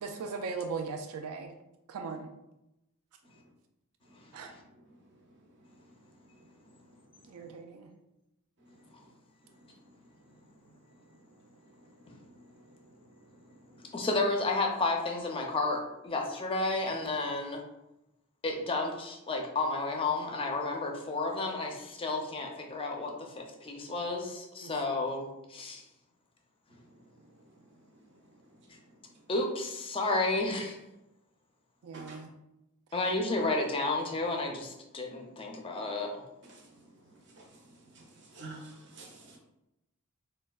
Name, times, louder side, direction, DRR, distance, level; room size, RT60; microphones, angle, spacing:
voice 1, 0.0-1.5 1.9-2.3 4.3-4.5 7.3-7.9 24.6-24.7 31.8-32.3, right 4 dB, 80° right, 4 dB, 0.4 m, -38 dB
voice 2, 12.0-12.7 13.1-13.3 31.9-32.2 36.5-36.6 37.4-37.5 37.9-38.0 38.3-39.4, right 2 dB, 55° right, -1 dB, 0.7 m, -49 dB
voice 3, 13.9-17.6 18.4-25.8 29.3-30.8 32.9-36.1, left 2 dB, 25° left, 2 dB, 0.4 m, -32 dB
4.2 x 2.2 x 2.2 m, 0.91 s
head